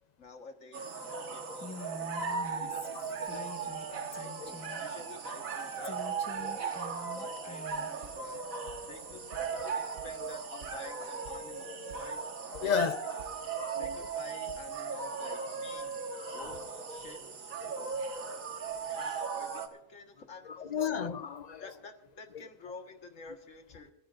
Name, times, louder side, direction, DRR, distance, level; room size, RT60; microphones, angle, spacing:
voice 1, 0.2-6.0 6.3-12.2 12.6-12.7 13.7-16.0 16.3-18.4 18.9-20.9 21.6-23.9, left 3 dB, 65° left, 1.9 m, -50 dB
sound 1, 0.7-19.7, right 5 dB, 80° right, 1.9 m, -38 dB
Female speech woman speaking, 1.6-3.9 4.1-4.9 5.8-8.0, left 2 dB, 15° left, 1.1 m, -45 dB
voice 2, 2.7-3.5 4.4-4.8 6.4-6.7 9.5-9.7 10.2-10.3 11.6-11.7 12.2-12.3 12.5-13.0 13.3-13.9 16.3-16.4 17.7-17.8 20.5-21.7, left 6 dB, 45° left, 0.6 m, -35 dB
sound 2, 7.7-9.1 9.3-10.3 10.6-11.0 11.2-11.6 11.9-12.3 12.5-12.9 13.2-14.7, right 1 dB, 55° right, 1.5 m, -52 dB
26.5 x 15.0 x 2.5 m
omnidirectional pair, 1.4 m